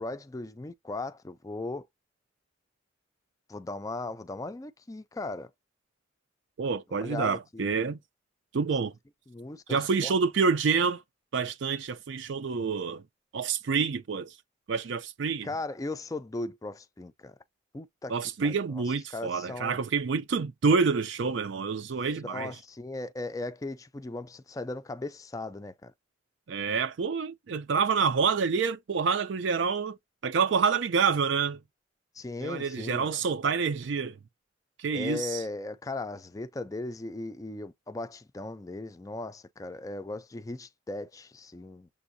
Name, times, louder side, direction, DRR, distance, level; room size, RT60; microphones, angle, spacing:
voice 1, 0.0-1.9 3.5-5.5 6.9-7.7 9.3-10.2 15.4-17.4 17.7-18.2 18.4-18.8 19.1-19.8 22.2-25.9 32.1-33.2 34.9-41.9, left 2 dB, 15° left, 0.4 m, -37 dB
voice 2, 6.6-8.0 8.5-8.9 9.7-11.0 11.3-13.0 13.3-14.4 14.7-15.5 18.1-22.5 26.5-30.0 30.2-31.6 32.4-34.2 34.8-35.4, right 5 dB, 65° right, 0.4 m, -27 dB
6.9 x 2.6 x 2.6 m
head